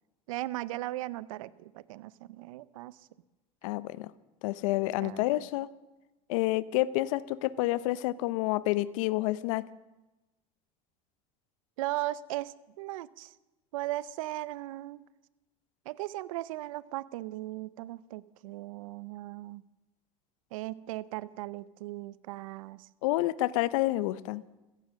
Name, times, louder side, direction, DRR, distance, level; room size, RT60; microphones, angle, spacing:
voice 1, 0.3-3.0 5.0-5.2 11.8-13.3 13.7-15.0 15.9-19.6 20.5-22.9, right 17 dB, 85° right, 19 dB, 0.6 m, -37 dB
voice 2, 3.6-4.1 4.4-5.7 6.3-9.7 23.0-24.4, left 17 dB, 80° left, 18 dB, 0.7 m, -29 dB
15.0 x 15.0 x 6.3 m, 1.1 s
supercardioid pair, 90°, 17 cm